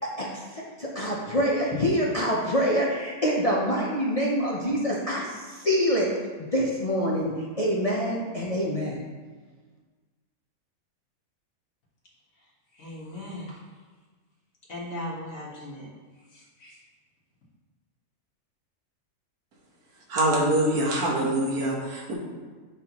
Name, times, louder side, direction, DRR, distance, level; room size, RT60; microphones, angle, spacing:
voice 1, 0.2-6.1 6.4-9.0, equal, 35° left, 0.6 m, -26 dB
voice 2, 12.7-13.6 14.7-15.9 16.3-16.8, left 1 dB, 65° left, 1.9 m, -38 dB
voice 3, 20.1-22.1, right 1 dB, 90° right, 1.8 m, -24 dB
7.5 x 5.6 x 3.0 m
omnidirectional pair, 1.6 m